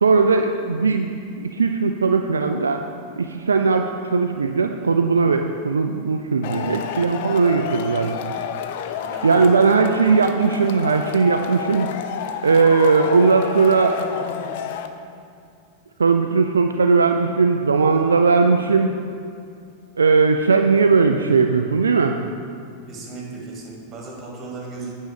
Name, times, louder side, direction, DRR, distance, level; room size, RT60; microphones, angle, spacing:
voice 1, 0.0-2.8 3.2-8.2 9.2-11.9 12.4-14.1 16.0-18.9 20.0-22.2, right 4 dB, 75° right, 5 dB, 0.3 m, -18 dB
Male speech man speaking / Shout / Clapping, 6.4-14.9, left 8 dB, 50° left, 0.5 m, -30 dB
voice 2, 9.0-9.5 22.9-24.9, right 3 dB, 25° right, -2 dB, 2.2 m, -36 dB
9.2 x 5.4 x 5.1 m, 2.4 s
figure-of-eight pair, 90°, 0 cm